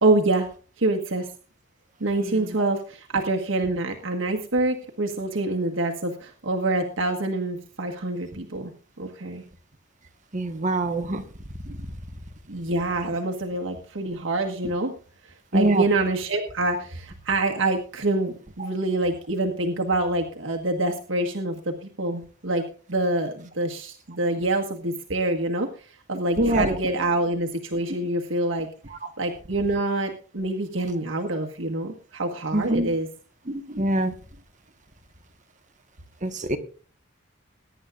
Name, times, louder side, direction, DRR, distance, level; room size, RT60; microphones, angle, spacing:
voice 1, 0.0-0.5 0.8-1.3 2.0-8.7 9.0-9.4 12.5-14.9 15.5-22.6 22.9-28.7 29.2-33.1, right 2 dB, 75° right, 2 dB, 1.5 m, -26 dB
voice 2, 10.3-11.2 15.5-15.8 26.4-26.7 32.5-32.9 33.5-34.1 36.2-36.6, right 1 dB, 40° right, 6 dB, 1.4 m, -24 dB
21.5 x 10.5 x 2.5 m, 0.39 s
head